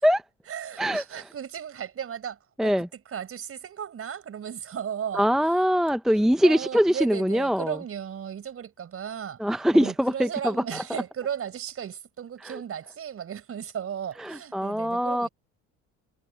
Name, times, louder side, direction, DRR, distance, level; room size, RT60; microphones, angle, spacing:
voice 1, 0.5-5.3 6.4-9.4 9.7-15.3, right 8 dB, 45° right, 5.4 m, -35 dB
voice 2, 5.1-7.8 9.4-11.0 12.4-12.6 14.2-15.3, equal, ahead, 0.5 m, -23 dB
cardioid pair, 105°, 30 cm